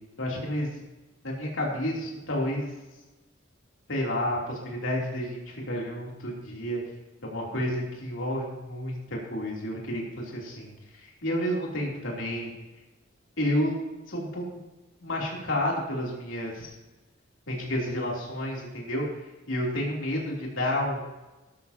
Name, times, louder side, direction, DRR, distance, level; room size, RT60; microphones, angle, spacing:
voice 1, 0.2-0.8 1.2-2.7 3.9-6.8 7.2-12.5 13.4-13.7 14.1-14.4 15.0-16.7 17.5-21.0, left 1 dB, 85° left, -3 dB, 3.1 m, -30 dB
14.5 x 12.5 x 2.8 m, 1.1 s
head